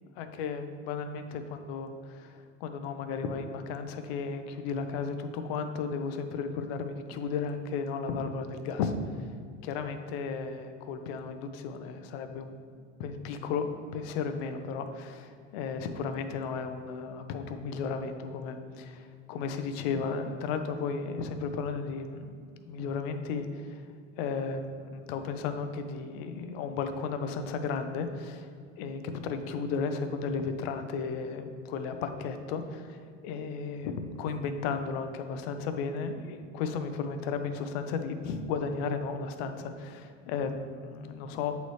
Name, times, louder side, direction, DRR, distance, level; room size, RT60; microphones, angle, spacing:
voice 1, 0.2-8.9 9.6-23.8 24.2-28.5 28.8-41.6, left 5 dB, 55° left, 8 dB, 0.6 m, -34 dB
7.9 x 4.1 x 3.2 m, 2.1 s
supercardioid pair, 140°, 38 cm